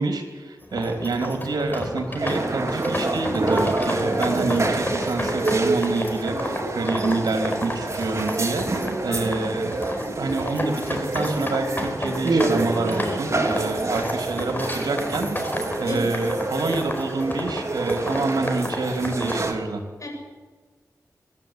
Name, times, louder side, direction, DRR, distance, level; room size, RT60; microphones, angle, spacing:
voice 1, 0.0-9.7 10.2-19.8, right 3 dB, 85° right, 4 dB, 2.8 m, -27 dB
sound 1, 0.6-19.5, left 1 dB, 30° left, 5.1 m, -32 dB
sound 2, 2.2-19.5, right 2 dB, 45° right, 2.8 m, -27 dB
voice 2, 9.1-9.3 15.8-16.1 20.0-20.1, left 2 dB, 55° left, 0 dB, 8.0 m, -31 dB
25.0 x 12.0 x 8.9 m, 1.4 s
cardioid pair, 60°, 7 cm